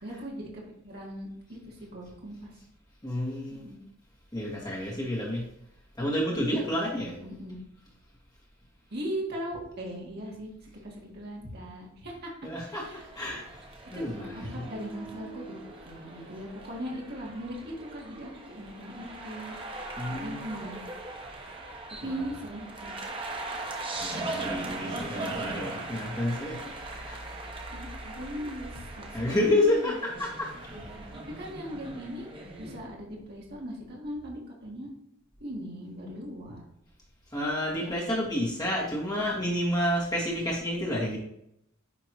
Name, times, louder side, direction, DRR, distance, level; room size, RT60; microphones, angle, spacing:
voice 1, 0.0-2.6 3.5-3.8 7.2-7.7 8.9-13.1 13.9-14.0 14.3-15.6 15.8-19.5 20.1-20.8 22.0-22.9 27.7-30.0 30.7-30.8 31.3-32.3 32.6-34.9 35.4-36.6 37.7-37.9 38.7-38.8, equal, 50° right, -3 dB, 1.8 m, -39 dB
voice 2, 3.0-3.6 4.3-5.4 6.0-7.1 12.4-13.4 13.9-14.6 20.0-20.5 22.0-22.3 24.0-26.7 27.0-27.2 29.1-30.5 37.3-41.2, left 1 dB, 20° left, -5 dB, 2.0 m, -30 dB
sound 1, 12.9-32.8, right 2 dB, 25° right, 0.8 m, -40 dB
10.0 x 3.5 x 3.0 m, 0.78 s
head